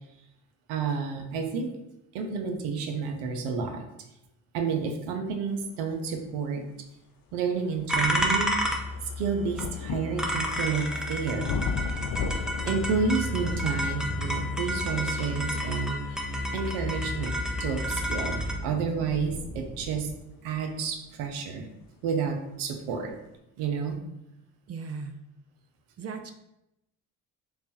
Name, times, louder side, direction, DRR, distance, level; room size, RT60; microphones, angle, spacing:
voice 1, 0.7-1.8 2.1-3.8 4.5-6.6 7.3-8.5 9.2-11.5 12.7-16.0 16.5-20.1 20.4-21.7 22.0-23.2 23.6-24.0, right 5 dB, 85° right, 5 dB, 0.6 m, -30 dB
sound 1, 6.6-6.7 7.3-22.0 22.9-23.0, left 5 dB, 60° left, 0.5 m, -39 dB
sound 2, 7.9-18.5, left 1 dB, ahead, 0.7 m, -31 dB
sound 3, 11.4-20.1, right 1 dB, 20° right, 1.0 m, -39 dB
voice 2, 24.7-25.2 26.0-26.3, right 5 dB, 40° right, 7 dB, 0.5 m, -37 dB
3.3 x 2.4 x 4.1 m, 0.86 s
supercardioid pair, 60°, 41 cm